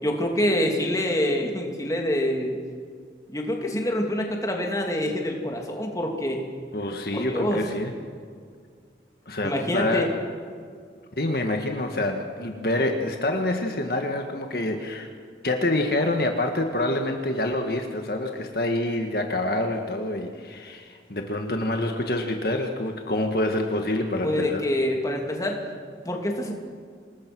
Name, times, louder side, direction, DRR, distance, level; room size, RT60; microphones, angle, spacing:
voice 1, 0.0-2.6 3.3-6.4 7.1-7.6 9.4-10.1 24.2-25.6 26.0-26.5, left 1 dB, 20° left, 1 dB, 2.8 m, -26 dB
voice 2, 6.7-7.9 9.2-10.1 11.2-15.1 15.4-24.7, left 1 dB, 55° left, 4 dB, 1.6 m, -26 dB
27.5 x 20.0 x 6.2 m, 2.1 s
head